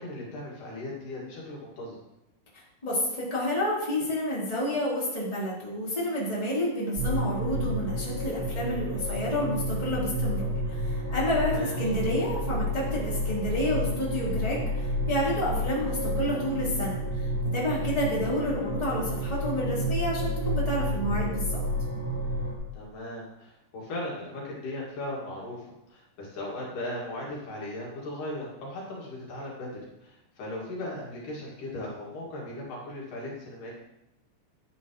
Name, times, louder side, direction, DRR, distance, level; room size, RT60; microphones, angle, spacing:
voice 1, 0.0-2.0 11.5-11.8 22.7-29.7 30.0-33.7, left 1 dB, 65° left, -4 dB, 3.6 m, -37 dB
voice 2, 2.8-21.6, left 1 dB, 10° left, -7 dB, 3.2 m, -30 dB
sound 1, 7.0-22.5, equal, 15° right, 3.5 m, -30 dB
11.5 x 10.5 x 3.1 m, 0.88 s
omnidirectional pair, 4.1 m